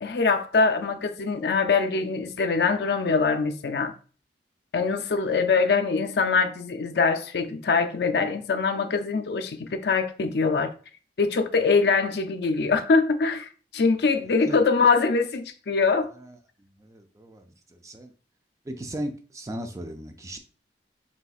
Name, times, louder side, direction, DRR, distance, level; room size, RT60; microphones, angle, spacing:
voice 1, 0.0-3.9 4.7-10.7 11.2-16.1, left 4 dB, 65° left, 0.5 m, -23 dB
voice 2, 14.2-14.6 16.1-16.4 16.8-18.1 18.6-20.4, right 1 dB, 20° right, 0.4 m, -37 dB
5.5 x 3.2 x 2.4 m
head